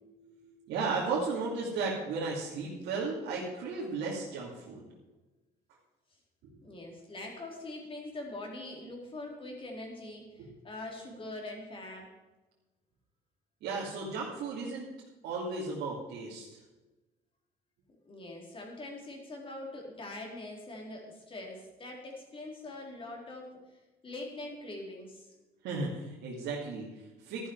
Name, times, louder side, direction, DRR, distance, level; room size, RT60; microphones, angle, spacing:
voice 1, 0.0-4.8 6.4-6.5 10.4-10.5 13.6-14.9 15.2-16.5 25.6-27.5, right 4 dB, 85° right, -5 dB, 2.7 m, -35 dB
voice 2, 6.6-12.1 18.0-25.3, left 2 dB, 30° left, 0 dB, 4.0 m, -43 dB
13.5 x 11.0 x 4.7 m, 1.1 s
cardioid pair, 110°, 17 cm